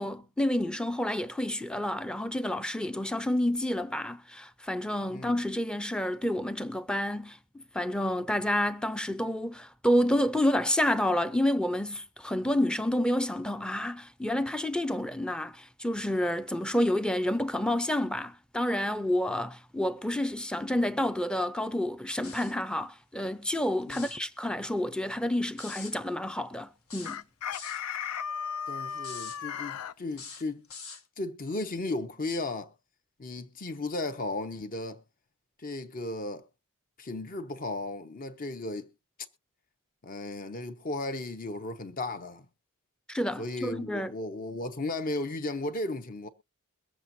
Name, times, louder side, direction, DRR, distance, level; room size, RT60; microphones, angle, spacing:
voice 1, 0.0-27.2 43.1-44.1, left 1 dB, 5° left, 0.5 m, -29 dB
voice 2, 5.1-5.4 23.8-24.1 28.7-30.7 31.2-32.7 33.2-35.0 35.6-36.4 37.0-38.9 40.0-42.5 43.4-46.3, left 2 dB, 40° left, 0.9 m, -35 dB
sound 1, 22.2-22.6 23.8-24.2 25.6-26.0 26.9-27.8 29.0-29.4 30.1-31.0, left 5 dB, 70° left, 1.3 m, -44 dB
Chicken rooster, 27.0-29.9, left 7 dB, 90° left, 0.5 m, -35 dB
22.5 x 7.5 x 2.7 m
head